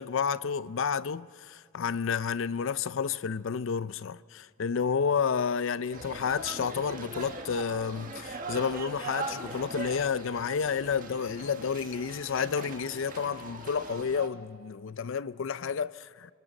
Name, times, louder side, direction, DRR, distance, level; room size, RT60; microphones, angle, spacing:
voice 1, 0.0-16.3, left 6 dB, 65° left, 0.5 m, -30 dB
sound 1, 5.9-14.3, right 3 dB, 40° right, 1.6 m, -40 dB
26.0 x 25.0 x 4.0 m
head